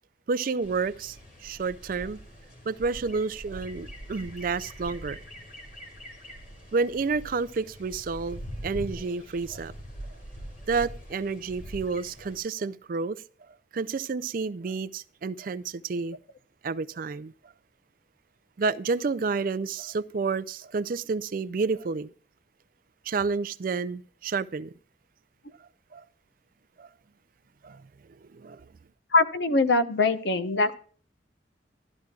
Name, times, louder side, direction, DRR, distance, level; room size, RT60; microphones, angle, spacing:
voice 1, 0.3-1.2 1.4-2.2 2.7-5.2 6.7-9.7 10.7-13.2 13.7-16.2 16.6-17.3 18.6-22.1 23.0-24.7 25.9-26.0 26.8-26.9 27.6-27.8 28.2-28.7, right 4 dB, 50° right, 0.4 m, -30 dB
sound 1, 0.6-12.4, equal, 50° left, 2.7 m, -43 dB
voice 2, 29.1-30.7, left 3 dB, 70° left, 0.9 m, -22 dB
12.5 x 12.0 x 2.4 m
head